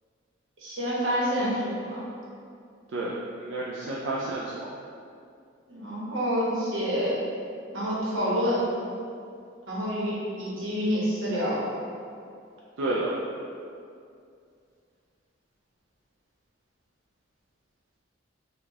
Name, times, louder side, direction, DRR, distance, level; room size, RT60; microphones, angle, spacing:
voice 1, 0.6-2.0 5.7-7.1 7.7-8.7 9.7-11.6, equal, 90° right, -7 dB, 1.0 m, -27 dB
voice 2, 2.9-4.6 12.8-13.1, right 2 dB, 70° right, -4 dB, 0.3 m, -30 dB
4.6 x 2.3 x 2.7 m, 2.4 s
head